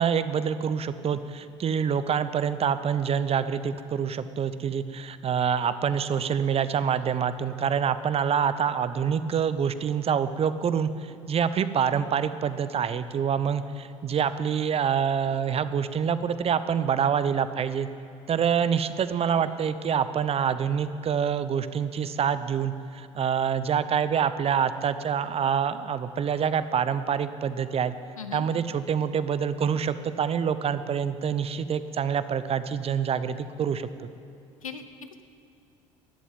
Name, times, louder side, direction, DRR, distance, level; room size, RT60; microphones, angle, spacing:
voice 1, 0.0-17.9 18.3-27.9 28.3-34.1, right 7 dB, 35° right, 13 dB, 0.8 m, -26 dB
voice 2, 28.2-28.5 34.6-35.2, left 6 dB, 85° left, 9 dB, 1.0 m, -39 dB
13.5 x 11.5 x 9.2 m, 2.6 s
figure-of-eight pair, 60°, 17 cm